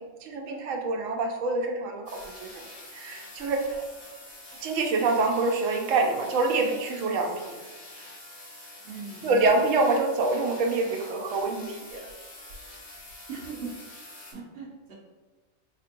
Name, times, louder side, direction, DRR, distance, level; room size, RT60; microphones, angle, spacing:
voice 1, 0.0-2.6 2.9-3.8 4.6-7.6 9.2-12.0, right 3 dB, 90° right, 3 dB, 1.0 m, -26 dB
sound 1, 2.1-14.3, left 1 dB, 50° left, 1.1 m, -46 dB
voice 2, 8.8-9.4 13.3-13.7 14.3-15.0, right 5 dB, 55° right, -2 dB, 1.0 m, -39 dB
4.1 x 2.8 x 2.5 m, 1.3 s
omnidirectional pair, 1.3 m